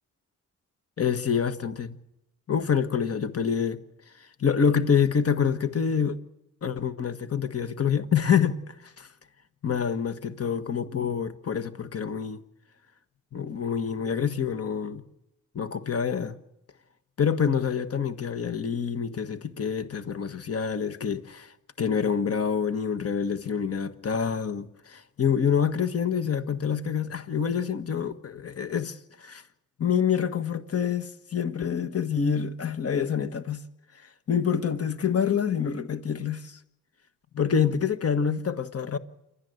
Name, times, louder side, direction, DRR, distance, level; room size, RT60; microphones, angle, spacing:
voice 1, 1.0-2.0 2.5-3.8 4.2-6.2 6.6-8.9 9.6-12.4 13.3-15.0 15.5-16.4 17.2-29.4 29.8-33.6 33.9-36.6 37.3-39.0, left 7 dB, 45° left, 1.5 m, -27 dB
28.0 x 11.5 x 8.0 m
cardioid pair, 70°, 33 cm